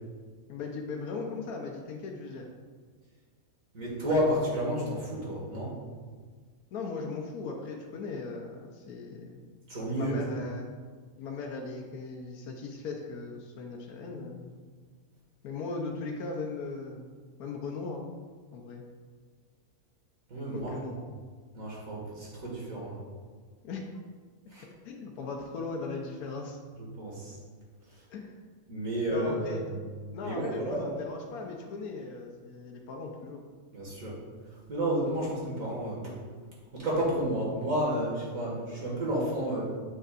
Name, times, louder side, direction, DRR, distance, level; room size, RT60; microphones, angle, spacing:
voice 1, 0.5-2.5 6.7-9.4 9.9-10.7 11.2-14.5 15.4-17.1 17.4-18.1 18.5-18.8 20.5-21.0 23.6-23.8 24.8-26.6 28.1-28.3 29.1-29.6 30.1-33.4, left 4 dB, 90° left, 1 dB, 1.2 m, -38 dB
voice 2, 3.7-5.7 9.7-10.2 20.3-20.7 21.5-23.0 24.5-24.7 26.8-27.4 27.9-28.0 28.7-30.9 33.7-34.1 34.5-36.1 36.7-39.6, right 1 dB, 65° right, -5 dB, 2.2 m, -31 dB
8.2 x 5.4 x 2.5 m, 1.5 s
omnidirectional pair, 1.5 m